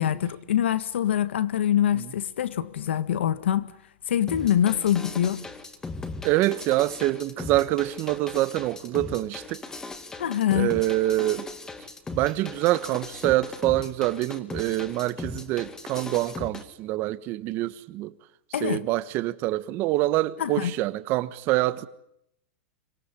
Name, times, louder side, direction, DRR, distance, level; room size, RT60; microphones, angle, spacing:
voice 1, 0.0-3.7 4.1-5.4 10.2-10.7 18.5-18.8 20.4-20.7, left 10 dB, 85° left, 1.7 m, -24 dB
sound 1, 4.3-16.6, left 3 dB, 10° left, 1.9 m, -38 dB
voice 2, 6.2-9.6 10.5-11.5 12.1-18.1 18.6-21.9, right 16 dB, 35° right, 1.3 m, -26 dB
25.5 x 18.0 x 9.9 m
supercardioid pair, 155°, 6 cm